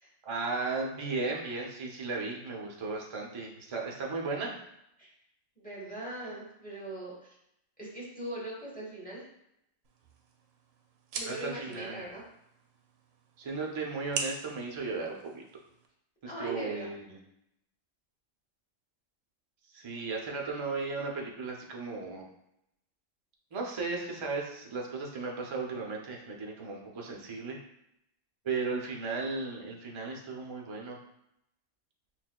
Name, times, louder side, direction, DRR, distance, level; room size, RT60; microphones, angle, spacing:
voice 1, 0.2-4.5 11.3-12.0 13.4-15.4 16.4-17.2 19.7-22.2 23.5-27.6 28.4-31.0, right 4 dB, 40° right, 0 dB, 0.4 m, -35 dB
voice 2, 5.6-7.3 7.8-9.2 11.1-12.2 16.2-16.9, right 1 dB, 5° left, -5 dB, 0.9 m, -40 dB
sound 1, 9.8-15.9, right 4 dB, 85° right, 1.0 m, -43 dB
5.9 x 2.4 x 2.2 m, 0.81 s
omnidirectional pair, 1.3 m